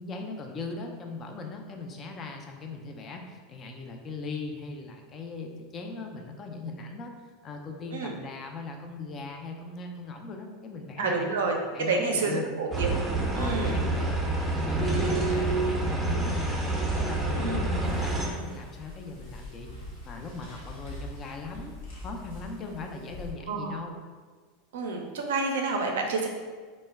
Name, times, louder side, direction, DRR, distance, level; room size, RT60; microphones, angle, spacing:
voice 1, 0.0-7.1 7.4-11.3 11.7-12.5 13.3-16.6 16.9-21.8 22.0-24.0, left 3 dB, 35° left, 3 dB, 0.4 m, -39 dB
voice 2, 11.0-12.9 13.3-13.8 17.4-17.6 23.5-23.8 24.7-26.3, right 3 dB, 80° right, 2 dB, 0.4 m, -29 dB
sound 1, 12.7-18.3, right 2 dB, 15° right, 0.5 m, -27 dB
sound 2, 17.8-23.3, left 2 dB, 75° left, 0.8 m, -43 dB
2.1 x 2.0 x 3.4 m, 1.5 s
hypercardioid pair, 95°, 0 cm